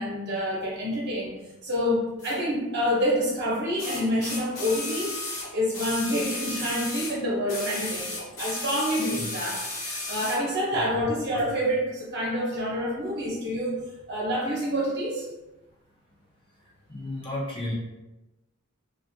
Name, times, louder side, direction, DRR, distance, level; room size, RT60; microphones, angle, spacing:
voice 1, 0.0-1.3 1.6-13.8 14.1-15.3, equal, 50° right, -5 dB, 0.8 m, -27 dB
sound 1, 2.2-2.3 3.8-7.2 7.5-10.4 11.4-11.5, left 2 dB, 70° left, 1.0 m, -34 dB
voice 2, 16.9-17.7, left 1 dB, 25° left, -4 dB, 0.5 m, -34 dB
2.6 x 2.3 x 2.6 m, 1.0 s
head